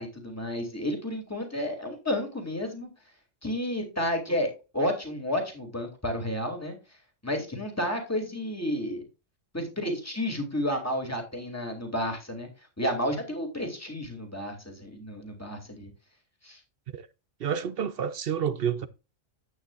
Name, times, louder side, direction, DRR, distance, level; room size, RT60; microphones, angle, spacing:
voice 1, 0.0-2.9 3.4-6.8 7.2-9.0 9.5-12.5 12.8-15.9 16.4-16.6, equal, 10° left, 2.7 m, -31 dB
voice 2, 17.4-18.9, right 8 dB, 55° right, 0.7 m, -29 dB
11.0 x 9.1 x 2.5 m
omnidirectional pair, 1.3 m